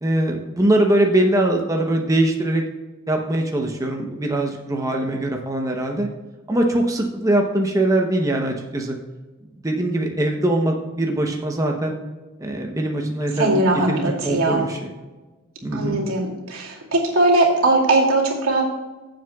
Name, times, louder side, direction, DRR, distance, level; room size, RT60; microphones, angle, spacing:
voice 1, 0.0-2.6 3.1-6.1 6.5-9.0 9.6-12.0 12.4-14.9 15.6-16.0, right 1 dB, 15° right, 1 dB, 0.8 m, -22 dB
voice 2, 13.4-14.6 15.7-18.6, right 2 dB, 80° right, -1 dB, 2.5 m, -19 dB
15.5 x 7.6 x 2.3 m, 1.2 s
head